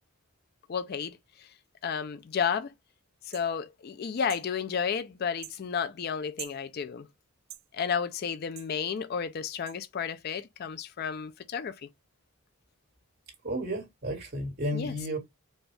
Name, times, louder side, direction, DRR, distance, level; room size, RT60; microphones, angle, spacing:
voice 1, 0.7-1.5 1.8-2.7 3.2-7.1 7.7-11.9 14.7-14.9, left 6 dB, 45° left, 0.3 m, -32 dB
sound 1, 3.3-3.5 4.3-4.5 5.4-5.6 6.4-6.6 7.5-7.7 8.6-8.7 9.7-9.8, right 13 dB, 65° right, 0.6 m, -43 dB
voice 2, 13.4-15.2, equal, 45° right, 1.6 m, -32 dB
4.2 x 2.3 x 3.2 m
head